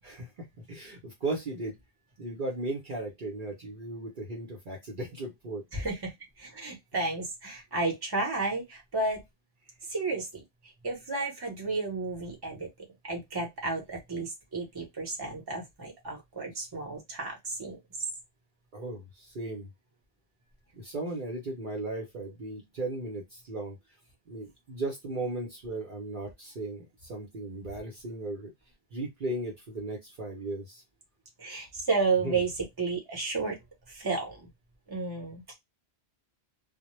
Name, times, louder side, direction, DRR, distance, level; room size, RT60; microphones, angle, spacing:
voice 1, 0.0-1.8 2.2-5.9 18.7-19.7 20.8-23.8 24.3-28.5 28.9-30.8 32.2-32.4, right 2 dB, 55° right, 0 dB, 0.8 m, -36 dB
voice 2, 5.7-9.2 9.9-10.3 10.8-12.7 13.0-17.8 31.4-33.6 33.9-34.5 34.9-35.4, right 3 dB, 25° right, 0 dB, 0.8 m, -32 dB
2.1 x 2.1 x 3.0 m, 0.17 s
omnidirectional pair, 1.1 m